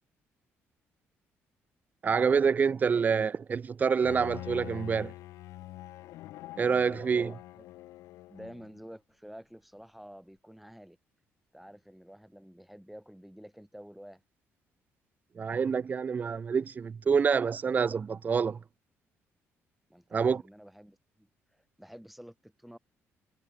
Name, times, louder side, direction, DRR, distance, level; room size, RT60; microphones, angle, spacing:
voice 1, 2.0-5.1 6.6-7.3 15.4-18.6 20.1-20.4, right 6 dB, 35° right, 0.4 m, -27 dB
Bowed string instrument, 4.0-8.8, left 16 dB, 90° left, 2.0 m, -45 dB
voice 2, 6.7-7.7 8.3-11.0 11.5-14.2 19.9-22.8, equal, ahead, 3.8 m, -50 dB
cardioid pair, 100°, 5 cm